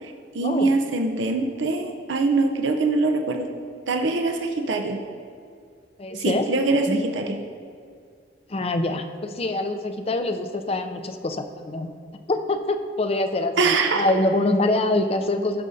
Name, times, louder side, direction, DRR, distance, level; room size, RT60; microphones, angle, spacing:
voice 1, 0.0-3.5 3.9-5.0 6.1-7.4 13.6-14.1, right 3 dB, 90° right, 4 dB, 0.6 m, -23 dB
voice 2, 6.0-6.5 6.9-7.0 8.5-11.9 12.3-15.6, left 2 dB, 35° left, 8 dB, 0.5 m, -25 dB
16.5 x 6.3 x 2.7 m, 2.2 s
head